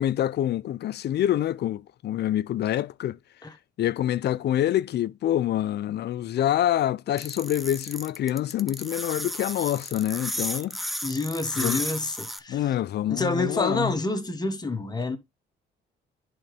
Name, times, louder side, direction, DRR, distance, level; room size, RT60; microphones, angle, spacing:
voice 1, 0.0-3.2 3.8-10.8 11.6-11.8 12.5-13.9, left 12 dB, 55° left, 0.4 m, -26 dB
sound 1, 7.2-12.4, equal, ahead, 0.7 m, -33 dB
voice 2, 11.0-12.6 13.1-15.2, left 2 dB, 20° left, 1.3 m, -28 dB
11.0 x 3.8 x 3.3 m
cardioid pair, 90°, 20 cm